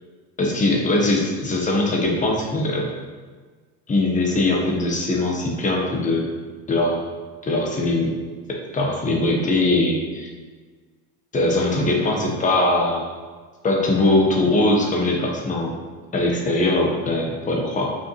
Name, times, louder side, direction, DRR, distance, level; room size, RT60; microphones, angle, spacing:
voice 1, 0.4-2.9 3.9-6.3 6.7-7.1 7.4-8.1 8.5-10.3 11.3-13.1 13.6-15.7 16.1-18.0, left 2 dB, 20° left, -1 dB, 1.2 m, -21 dB
7.4 x 5.9 x 3.1 m, 1.5 s
cardioid pair, 145°, 41 cm